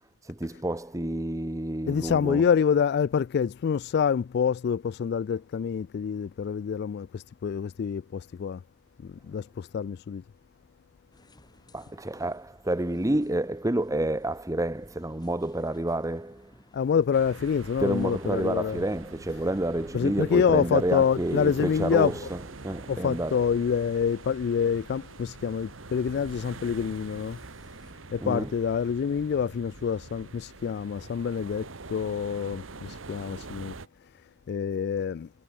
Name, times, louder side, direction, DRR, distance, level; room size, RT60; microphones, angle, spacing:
voice 1, 0.2-2.4 11.7-16.5 17.8-23.4 28.2-28.5, right 1 dB, 15° right, 1.0 m, -29 dB
voice 2, 1.9-8.6 9.0-10.2 16.7-18.8 19.9-22.1 22.9-27.4 28.1-33.7 34.5-35.3, left 7 dB, 55° left, 0.3 m, -27 dB
sound 1, 11.1-28.0, left 1 dB, 20° left, 6.7 m, -58 dB
sound 2, 17.1-33.9, right 3 dB, 80° right, 1.4 m, -45 dB
head